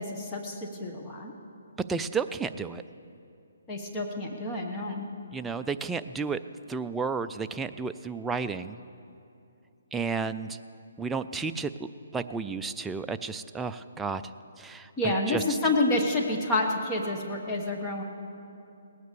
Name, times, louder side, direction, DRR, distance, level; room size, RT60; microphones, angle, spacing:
voice 1, 0.0-1.3 3.7-5.1 15.0-18.0, left 2 dB, 15° left, 1 dB, 1.2 m, -28 dB
voice 2, 1.9-2.8 5.3-6.4 6.7-8.8 9.9-10.6 11.0-11.7 12.1-14.2 14.6-15.4, right 5 dB, 5° right, 8 dB, 0.3 m, -32 dB
18.0 x 9.4 x 6.8 m, 2.7 s
hypercardioid pair, 160°, 0 cm